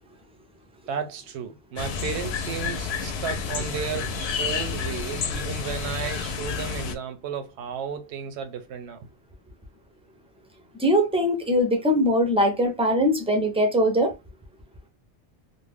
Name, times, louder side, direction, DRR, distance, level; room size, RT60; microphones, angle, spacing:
voice 1, 0.9-9.1, right 7 dB, 85° right, 0.9 m, -34 dB
sound 1, 1.8-6.9, left 5 dB, 75° left, 0.8 m, -30 dB
voice 2, 10.8-14.1, equal, 10° right, 0.4 m, -21 dB
2.5 x 2.1 x 3.3 m
omnidirectional pair, 1.1 m